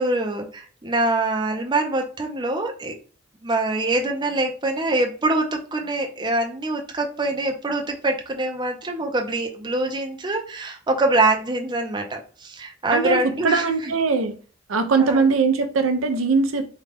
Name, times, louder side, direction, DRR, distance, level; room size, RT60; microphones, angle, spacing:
voice 1, 0.0-2.9 3.4-13.9 15.0-15.2, right 2 dB, 20° right, 0.5 m, -24 dB
voice 2, 12.9-14.4 14.7-16.7, right 4 dB, 85° right, 0.5 m, -21 dB
3.6 x 2.3 x 3.3 m
head